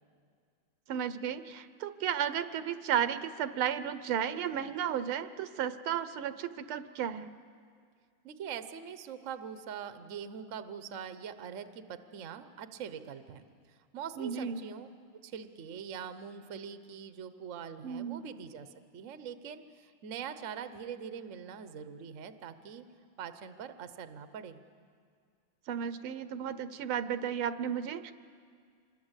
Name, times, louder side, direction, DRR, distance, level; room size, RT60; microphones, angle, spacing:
voice 1, 0.9-7.3 14.2-14.6 17.8-18.2 25.7-28.1, right 9 dB, 75° right, 12 dB, 1.7 m, -33 dB
voice 2, 8.2-13.5 13.9-14.9 15.2-18.7 18.9-22.8 23.2-24.6, right 7 dB, 50° right, 10 dB, 1.0 m, -43 dB
26.0 x 21.5 x 8.2 m, 2.1 s
omnidirectional pair, 2.4 m